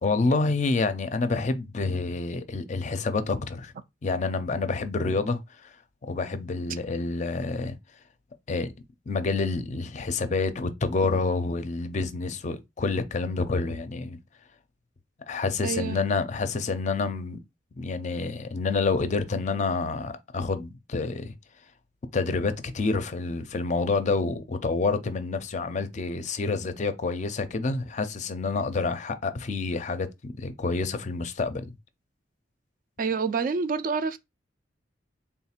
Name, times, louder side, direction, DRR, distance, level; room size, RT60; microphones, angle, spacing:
voice 1, 0.0-3.7 4.0-5.7 6.0-7.8 8.5-8.7 9.1-14.2 15.3-17.4 17.8-21.3 22.1-31.7, left 3 dB, 40° left, 0.5 m, -28 dB
voice 2, 15.6-16.0 33.0-34.2, right 5 dB, 45° right, 0.3 m, -27 dB
3.6 x 2.4 x 4.3 m
head